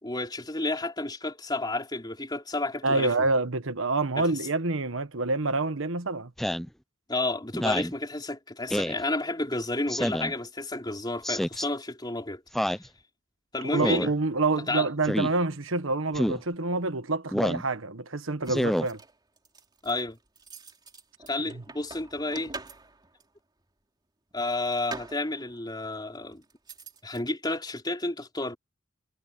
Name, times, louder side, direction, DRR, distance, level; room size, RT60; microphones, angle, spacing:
voice 1, 0.0-3.1 4.2-4.3 7.1-12.4 13.5-14.1 14.7-14.9 19.8-20.2 21.3-22.5 24.3-26.4 27.0-28.6, left 2 dB, 20° left, 3.6 m, -31 dB
voice 2, 2.8-6.3 13.7-19.0, right 3 dB, 75° right, 1.3 m, -27 dB
Speech synthesizer, 6.4-6.7 7.5-7.9 8.7-9.0 9.9-10.3 11.2-11.7 12.5-12.9 13.8-14.1 15.0-15.3 16.1-16.4 17.3-17.6 18.5-18.9, equal, ahead, 0.6 m, -27 dB
sound 1, 18.4-23.3 24.3-25.7 26.3-27.2, right 3 dB, 20° right, 3.2 m, -45 dB
head